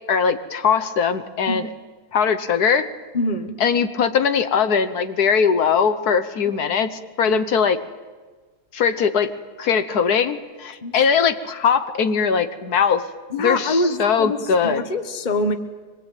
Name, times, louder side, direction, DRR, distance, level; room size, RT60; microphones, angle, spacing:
voice 1, 0.1-1.7 2.1-2.9 3.6-7.8 8.7-9.3 9.6-13.0 13.4-14.8, left 6 dB, 70° left, 11 dB, 1.5 m, -20 dB
voice 2, 3.1-3.6 7.3-7.4 10.8-10.9 13.3-14.4 14.6-15.5, left 2 dB, 30° left, 9 dB, 1.2 m, -24 dB
24.0 x 22.0 x 9.1 m, 1.4 s
omnidirectional pair, 1.7 m